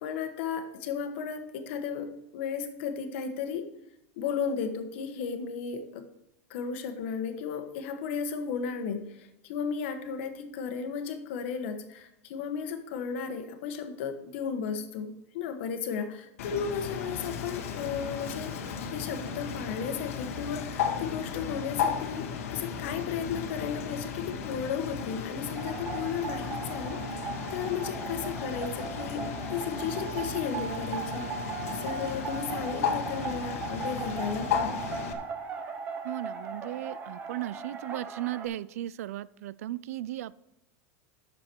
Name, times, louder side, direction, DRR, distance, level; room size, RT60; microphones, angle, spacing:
voice 1, 0.0-3.7 4.2-6.1 6.5-18.5 18.9-29.2 29.5-31.3 31.7-34.8, left 6 dB, 55° left, 7 dB, 1.3 m, -34 dB
Bird, 16.4-35.1, left 7 dB, 75° left, 1.3 m, -35 dB
sound 1, 25.6-38.5, right 5 dB, 20° right, 0.8 m, -38 dB
voice 2, 36.0-40.3, right 14 dB, 85° right, 20 dB, 0.4 m, -36 dB
10.5 x 6.9 x 4.5 m, 0.87 s
supercardioid pair, 170°, 8 cm